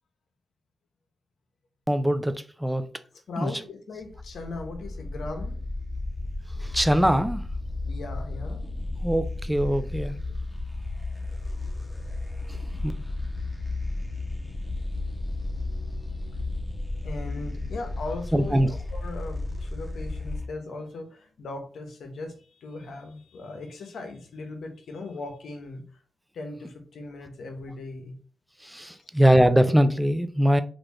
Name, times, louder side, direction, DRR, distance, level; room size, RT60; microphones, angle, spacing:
voice 1, 1.9-2.9 3.4-3.5 6.6-7.5 9.0-10.2 12.8-12.9 18.3-18.7 28.6-30.6, equal, 5° right, 0.4 m, -22 dB
voice 2, 3.3-5.6 7.9-8.6 15.6-16.4 17.0-25.8 26.3-28.2, left 3 dB, 80° left, 0.7 m, -38 dB
sound 1, 4.0-20.5, left 2 dB, 15° left, 0.8 m, -33 dB
3.0 x 2.5 x 3.4 m
cardioid pair, 50°, 0 cm